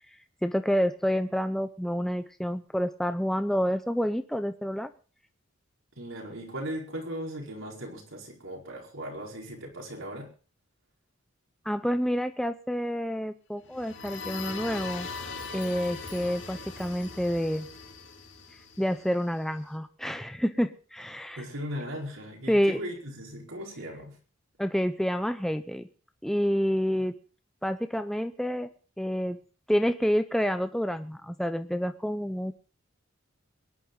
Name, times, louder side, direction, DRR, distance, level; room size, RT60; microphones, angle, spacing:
voice 1, 0.4-4.9 11.7-15.1 15.5-17.7 18.8-21.4 22.5-22.8 24.6-25.9 26.2-27.1 27.6-28.7 29.0-29.4 29.7-32.5, equal, ahead, 8 dB, 0.6 m, -28 dB
voice 2, 6.0-10.3 21.4-24.2, equal, 75° right, 0 dB, 4.8 m, -38 dB
sound 1, 13.6-19.4, left 4 dB, 60° left, 3.1 m, -40 dB
22.5 x 11.0 x 3.9 m, 0.37 s
head